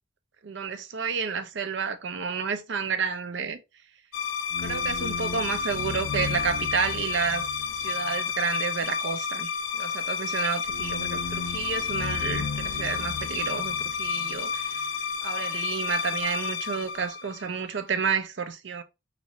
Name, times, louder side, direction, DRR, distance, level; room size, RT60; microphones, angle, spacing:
voice 1, 0.4-3.6 4.6-7.5 7.8-14.9 15.2-18.8, right 6 dB, 65° right, 0.5 m, -30 dB
sound 1, 4.1-17.8, left 6 dB, 75° left, 0.3 m, -30 dB
3.1 x 2.4 x 4.0 m
head